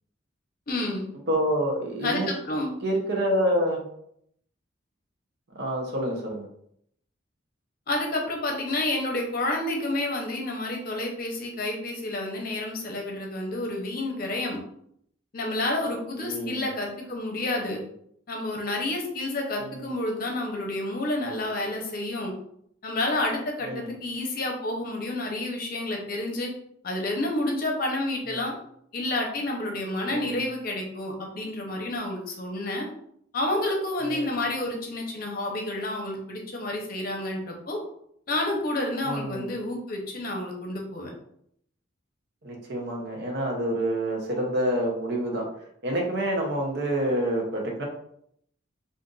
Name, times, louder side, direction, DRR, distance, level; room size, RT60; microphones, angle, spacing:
voice 1, 0.7-1.1 2.0-2.7 7.9-14.6 15.3-17.8 18.3-22.3 22.8-26.5 26.8-28.5 28.9-32.9 33.3-37.8 38.3-41.1, left 2 dB, 50° left, 1 dB, 0.7 m, -29 dB
voice 2, 1.3-2.3 2.8-3.8 5.5-6.5 16.2-16.6 19.6-19.9 23.6-23.9 28.2-28.4 30.1-30.4 34.0-34.4 39.0-39.5 42.4-45.5 45.8-47.8, equal, 55° right, 0 dB, 0.7 m, -27 dB
2.6 x 2.5 x 3.8 m, 0.70 s
head